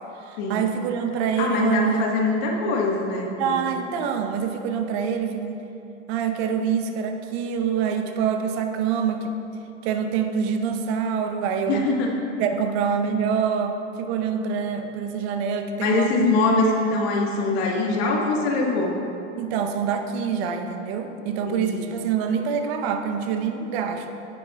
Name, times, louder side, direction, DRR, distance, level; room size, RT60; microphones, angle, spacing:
voice 1, 0.2-2.3 3.4-5.7 6.1-9.3 9.8-11.9 12.4-16.8 19.4-24.1, right 7 dB, 60° right, 6 dB, 0.9 m, -26 dB
voice 2, 1.4-3.7 11.7-12.1 15.8-19.0 21.4-21.8, left 3 dB, 60° left, 0 dB, 1.5 m, -23 dB
15.5 x 5.7 x 2.3 m, 2.8 s
hypercardioid pair, 90°, 37 cm